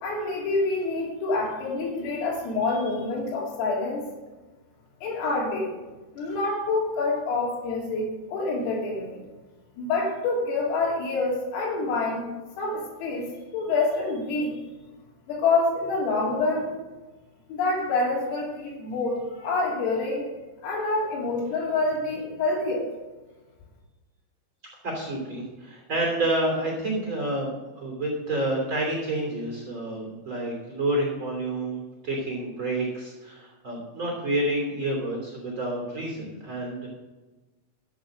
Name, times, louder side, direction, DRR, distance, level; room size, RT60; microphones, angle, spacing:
voice 1, 0.0-4.1 5.0-5.7 6.2-9.2 9.8-12.3 12.6-14.5 15.3-16.7 17.5-20.3 20.6-22.9, left 3 dB, 80° left, -2 dB, 5.6 m, -27 dB
voice 2, 24.8-36.9, right 1 dB, 30° right, -1 dB, 3.0 m, -29 dB
14.0 x 7.4 x 6.6 m, 1.2 s
omnidirectional pair, 6.0 m